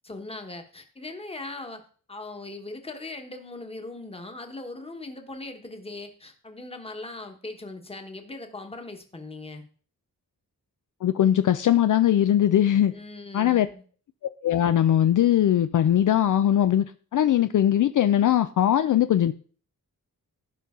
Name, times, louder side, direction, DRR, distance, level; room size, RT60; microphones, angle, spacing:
voice 1, 0.0-1.8 2.1-9.6 12.9-13.8, left 2 dB, 15° left, 5 dB, 1.3 m, -39 dB
voice 2, 11.0-12.9 13.3-13.7 14.4-19.3, left 11 dB, 60° left, 11 dB, 0.4 m, -20 dB
16.0 x 5.5 x 3.7 m, 0.43 s
wide cardioid pair, 165°, 36 cm